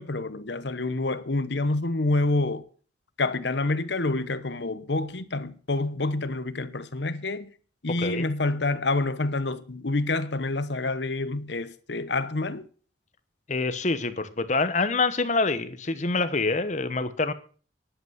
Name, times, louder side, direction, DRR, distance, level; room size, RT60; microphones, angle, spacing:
voice 1, 0.0-2.6 3.2-7.5 7.8-12.7, left 2 dB, 70° left, 1.0 m, -27 dB
voice 2, 13.5-17.3, left 3 dB, 40° left, 1.0 m, -26 dB
11.0 x 8.3 x 7.9 m
head